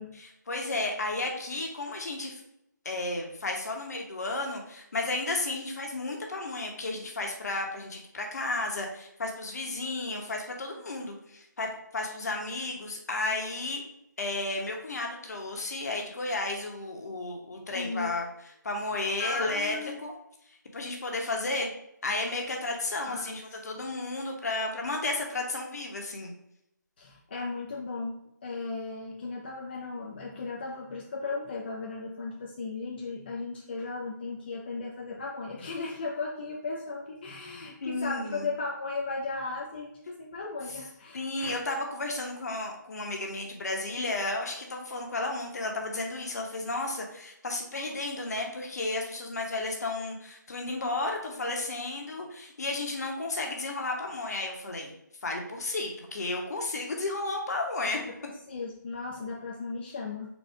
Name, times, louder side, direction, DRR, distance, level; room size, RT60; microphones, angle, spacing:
voice 1, 0.1-2.4 2.8-13.8 14.2-18.3 18.6-20.2 20.5-21.7 22.0-26.3 37.8-38.5 40.7-40.8 41.1-54.9 55.2-58.0, left 2 dB, 55° left, 1 dB, 1.0 m, -33 dB
voice 2, 17.7-18.1 19.2-20.0 23.0-23.3 23.7-23.8 27.0-41.6 58.5-60.3, left 3 dB, 35° left, 0 dB, 0.4 m, -36 dB
4.2 x 2.3 x 4.5 m, 0.81 s
figure-of-eight pair, 155°, 10 cm